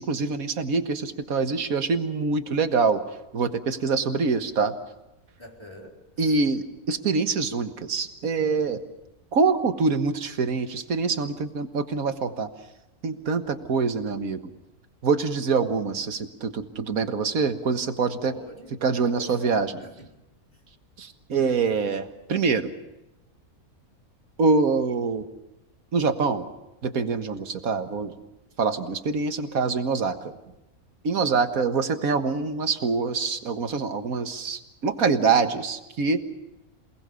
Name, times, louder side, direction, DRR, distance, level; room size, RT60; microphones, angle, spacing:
voice 1, 0.0-3.0 3.3-4.7 6.2-8.8 9.3-12.5 13.0-14.4 15.0-18.3 18.8-19.7 21.0-22.7 24.4-25.3 25.9-26.5 26.8-28.1 28.6-30.3 31.0-36.2, right 4 dB, 70° right, 8 dB, 1.9 m, -25 dB
voice 2, 5.4-6.4 18.2-18.7 19.1-20.2, equal, 20° left, 0 dB, 3.8 m, -43 dB
28.0 x 20.0 x 7.0 m, 0.94 s
omnidirectional pair, 1.6 m